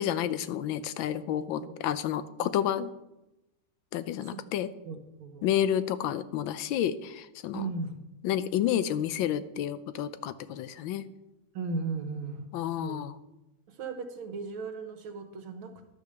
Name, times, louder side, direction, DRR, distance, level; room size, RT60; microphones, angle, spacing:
voice 1, 0.0-2.9 3.9-4.7 5.4-7.6 8.2-11.0 12.5-13.1, left 10 dB, 75° left, 13 dB, 1.4 m, -30 dB
voice 2, 4.9-5.5 7.5-8.0 11.5-12.5 12.8-13.0 13.7-15.7, right 4 dB, 75° right, 7 dB, 2.0 m, -36 dB
11.5 x 6.3 x 6.7 m, 0.95 s
omnidirectional pair, 2.3 m